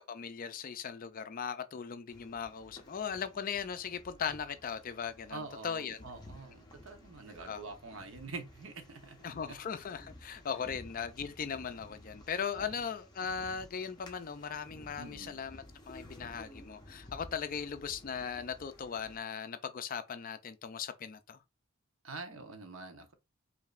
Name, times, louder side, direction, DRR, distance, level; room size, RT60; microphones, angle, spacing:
voice 1, 0.1-6.1 7.5-7.6 9.2-21.4, left 7 dB, 40° left, 0.4 m, -38 dB
sound 1, 2.1-19.2, left 1 dB, 20° left, 0.9 m, -54 dB
voice 2, 5.3-9.2 12.5-12.7 15.0-15.4 22.0-23.1, right 3 dB, 65° right, 0.9 m, -45 dB
5.1 x 2.7 x 2.5 m
head